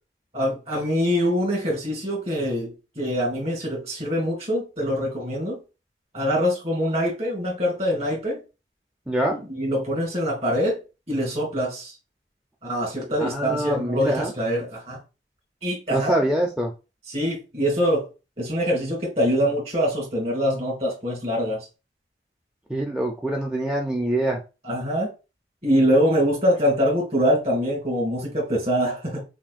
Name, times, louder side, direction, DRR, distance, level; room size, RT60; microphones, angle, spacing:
voice 1, 0.3-5.6 6.1-8.4 9.3-10.8 11.1-11.9 12.6-15.0 15.6-16.1 17.1-18.1 18.4-21.6 24.6-25.1 25.6-29.2, equal, 35° right, 1.9 m, -24 dB
voice 2, 9.1-9.4 13.2-14.3 15.9-16.7 22.7-24.4, right 1 dB, 5° right, 0.4 m, -24 dB
5.8 x 2.1 x 2.5 m
head